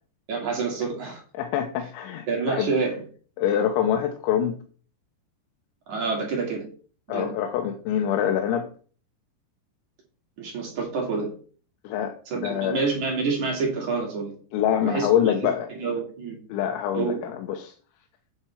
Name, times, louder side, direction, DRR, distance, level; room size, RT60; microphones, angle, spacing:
voice 1, 0.3-1.2 2.3-3.0 5.9-6.7 7.1-7.3 10.4-11.3 12.3-14.4 14.8-15.3 15.7-16.4 16.9-17.2, right 4 dB, 45° right, -1 dB, 3.4 m, -28 dB
voice 2, 1.4-2.7 3.4-4.6 7.1-8.7 11.8-12.8 14.5-15.7 16.5-17.7, left 9 dB, 90° left, 5 dB, 3.3 m, -25 dB
9.5 x 6.9 x 4.5 m, 0.42 s
omnidirectional pair, 5.2 m